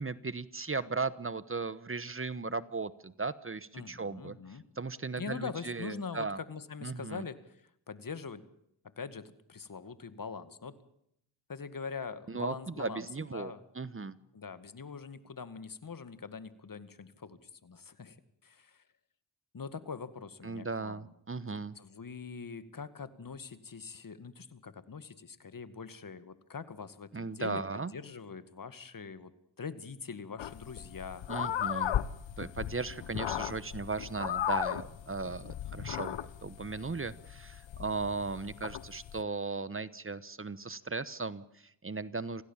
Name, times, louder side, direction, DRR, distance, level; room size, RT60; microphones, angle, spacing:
voice 1, 0.0-6.4 6.8-7.2 12.3-14.1 20.4-21.7 27.1-27.9 31.3-31.9 32.4-36.1 36.4-42.4, right 4 dB, 30° right, 16 dB, 1.2 m, -37 dB
voice 2, 3.7-4.6 5.2-8.4 9.0-10.8 11.5-13.6 14.3-18.2 18.4-18.8 19.5-21.1 21.4-27.6 27.9-29.3 29.6-31.2, left 5 dB, 45° left, 13 dB, 2.1 m, -43 dB
sound 1, 30.4-39.2, left 11 dB, 80° left, 1.1 m, -37 dB
26.5 x 16.5 x 7.4 m, 0.75 s
cardioid pair, 60°, 45 cm